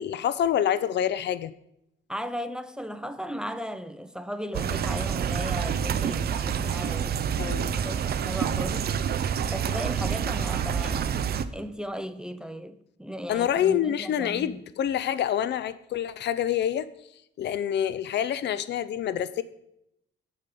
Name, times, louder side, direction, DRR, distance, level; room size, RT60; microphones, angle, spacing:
voice 1, 0.0-1.5 7.4-7.7 13.3-16.9 17.4-19.4, left 10 dB, 60° left, 0.5 m, -27 dB
voice 2, 2.1-7.3 7.8-8.9 9.5-14.6, equal, 5° right, 0.5 m, -36 dB
sound 1, 4.5-11.4, right 8 dB, 50° right, 0.5 m, -28 dB
7.1 x 5.2 x 6.7 m
cardioid pair, 90°, 20 cm